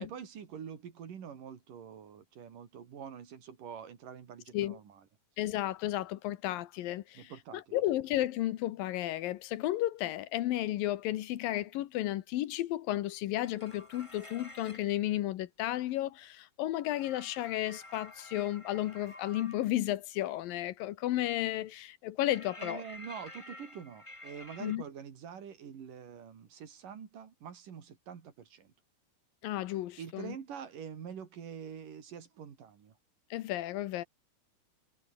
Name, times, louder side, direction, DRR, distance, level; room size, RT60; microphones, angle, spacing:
voice 1, 0.0-5.0 7.2-7.8 22.6-28.7 30.0-33.0, right 7 dB, 65° right, 4.3 m, -46 dB
voice 2, 5.4-22.8 24.6-24.8 29.4-30.4 33.3-34.0, left 14 dB, 75° left, 2.7 m, -33 dB
sound 1, 13.3-14.9 16.9-19.7 22.3-24.8, left 1 dB, 10° left, 2.9 m, -50 dB
omnidirectional pair, 4.1 m